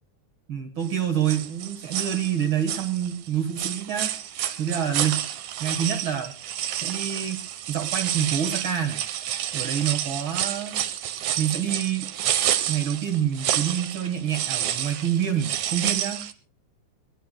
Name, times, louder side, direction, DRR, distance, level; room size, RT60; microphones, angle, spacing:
voice 1, 0.5-4.1 4.6-5.3 5.6-6.4 6.8-7.4 7.7-9.0 9.5-10.8 11.4-12.1 12.7-16.2, right 9 dB, 50° right, 6 dB, 1.9 m, -27 dB
sound 1, 0.8-1.0 1.3-3.3 3.6-16.3, right 11 dB, 85° right, 2.4 m, -29 dB
22.5 x 19.0 x 2.2 m, 0.31 s
omnidirectional pair, 3.4 m